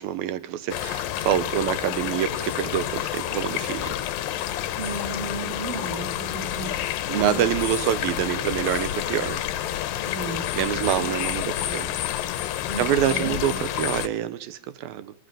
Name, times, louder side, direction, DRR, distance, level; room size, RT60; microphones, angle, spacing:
voice 1, 0.0-3.9 7.1-9.4 10.5-11.9 12.8-15.1, right 11 dB, 80° right, 13 dB, 2.8 m, -26 dB
sound 1, 0.7-14.1, left 12 dB, 75° left, 2.5 m, -29 dB
voice 2, 4.8-7.5 10.1-10.5 10.8-11.1 11.4-11.9 12.7-13.6, right 3 dB, 65° right, 2 dB, 5.4 m, -34 dB
25.0 x 14.5 x 9.0 m, 0.79 s
omnidirectional pair, 4.2 m